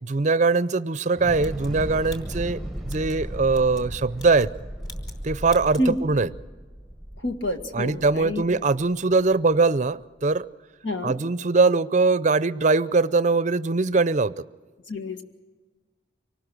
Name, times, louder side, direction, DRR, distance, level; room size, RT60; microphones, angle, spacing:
voice 1, 0.0-4.5 5.2-6.3 7.7-10.5 11.0-14.3, right 3 dB, 40° right, 16 dB, 0.5 m, -22 dB
Thunder / Explosion, 1.1-9.3, right 1 dB, ahead, 0.9 m, -36 dB
sound 1, 1.4-3.2 3.5-3.9 4.1-4.5 4.8-5.2 5.4-5.9, left 3 dB, 20° left, 3.1 m, -47 dB
voice 2, 7.2-8.4 10.8-11.2 14.9-15.2, left 1 dB, 75° left, 6 dB, 1.8 m, -28 dB
25.0 x 19.0 x 6.2 m, 1.3 s
head